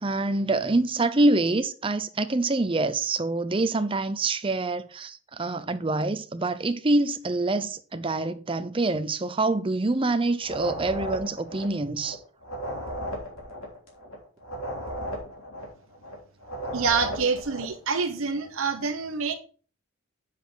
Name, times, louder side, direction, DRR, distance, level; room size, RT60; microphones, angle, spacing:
voice 1, 0.0-12.2, right 2 dB, 25° right, 0.6 m, -26 dB
sound 1, 10.4-17.8, equal, 85° left, 3.2 m, -35 dB
voice 2, 16.7-19.3, right 5 dB, 80° right, 1.1 m, -26 dB
8.2 x 7.3 x 3.9 m
head